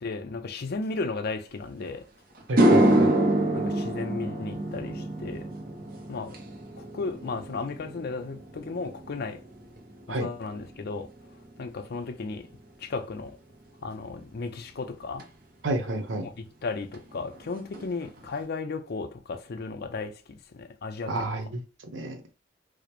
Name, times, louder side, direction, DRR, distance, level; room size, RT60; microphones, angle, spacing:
voice 1, 0.0-2.1 3.5-5.5 6.1-6.4 6.8-9.4 10.1-11.1 11.6-12.5 12.8-13.4 13.8-15.3 16.2-16.3 16.6-21.3, left 3 dB, 55° left, 0.5 m, -35 dB
sound 1, 1.8-1.9 2.4-10.9 11.2-11.6 15.2-15.3 16.9-17.0 17.3-17.5 17.7-18.3, right 1 dB, 50° right, 0.6 m, -26 dB
voice 2, 2.5-3.1 10.1-10.3 15.6-16.3 21.1-21.6 21.9-22.2, right 2 dB, 85° right, 0.8 m, -30 dB
4.9 x 2.0 x 3.0 m
head